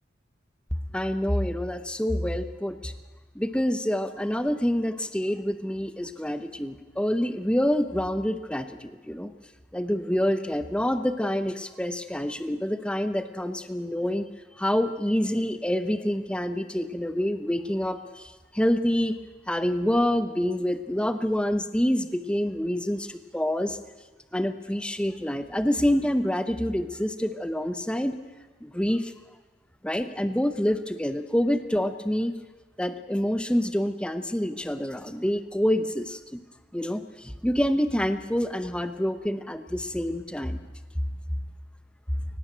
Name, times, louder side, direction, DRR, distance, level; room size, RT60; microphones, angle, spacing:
voice 1, 0.9-2.9 3.3-9.3 9.7-14.3 14.6-19.2 19.5-23.8 24.3-28.2 28.6-29.1 29.8-32.3 32.8-36.4 36.7-40.6, equal, 5° left, 10 dB, 0.8 m, -27 dB
18.0 x 17.5 x 8.9 m, 1.3 s
head